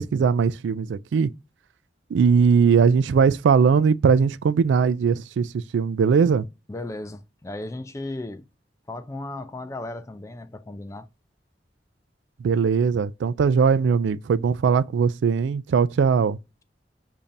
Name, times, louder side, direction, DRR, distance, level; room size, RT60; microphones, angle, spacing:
voice 1, 0.0-1.3 2.1-6.5 12.4-16.4, right 6 dB, 80° right, 0.3 m, -20 dB
voice 2, 6.7-8.4 8.9-11.1, left 2 dB, 15° left, 0.4 m, -35 dB
6.9 x 2.7 x 2.5 m
head